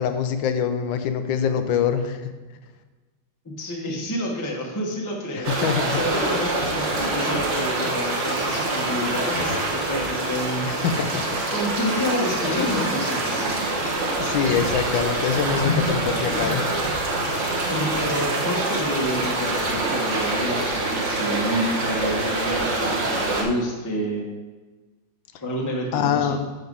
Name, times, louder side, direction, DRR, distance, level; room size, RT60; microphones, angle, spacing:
voice 1, 0.0-2.2 5.4-6.0 10.6-11.4 14.2-16.8 25.9-26.4, left 7 dB, 80° left, 8 dB, 1.4 m, -24 dB
voice 2, 3.4-5.5 5.9-10.7 11.5-13.4 17.7-24.2 25.4-26.4, equal, 15° left, -2 dB, 0.9 m, -29 dB
sound 1, 5.4-23.4, right 2 dB, 45° right, 1.4 m, -25 dB
sound 2, 9.3-11.1 11.3-11.4 11.6-11.7 12.4-17.4 17.8-18.2 18.6-18.9 19.4-19.6 20.2-20.3 20.9-21.0, left 3 dB, 55° left, 1.5 m, -33 dB
6.5 x 5.8 x 5.3 m, 1.3 s
omnidirectional pair, 2.1 m